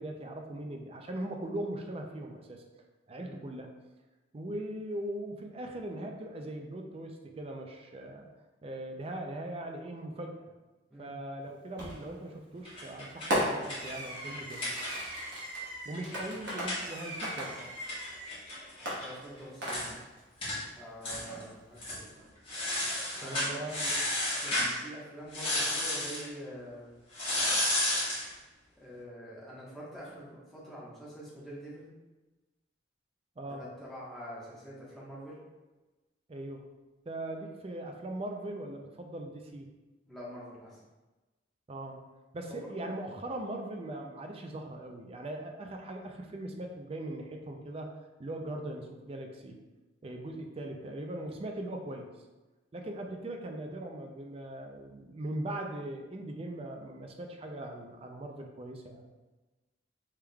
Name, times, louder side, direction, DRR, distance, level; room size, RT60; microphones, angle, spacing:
voice 1, 0.0-2.6 3.1-3.7 4.3-8.3 8.6-10.4 11.0-14.7 15.9-17.7 23.2-23.8 33.4-33.6 36.3-36.7 37.1-39.7 41.7-42.0 42.3-47.9 48.2-49.6 50.0-52.1 52.7-59.1, right 1 dB, 30° right, 3 dB, 0.4 m, -40 dB
Fireworks, 11.8-12.2 13.3-18.3 18.9-20.2, equal, 60° right, 1.3 m, -36 dB
sound 1, 12.6-15.3 15.6-15.7 15.9-19.1 19.4-19.5 19.7-19.9 20.4-20.6 21.0-21.4 21.8-22.0 22.5-24.7 25.3-26.2 27.1-28.3, left 1 dB, 30° left, 1.4 m, -33 dB
voice 2, 18.8-20.0 20.8-22.1 23.1-24.0 24.4-26.9 28.8-31.9 33.5-35.4 40.1-40.8 42.6-42.7, equal, ahead, -8 dB, 1.2 m, -46 dB
4.7 x 3.4 x 2.3 m, 1.2 s
head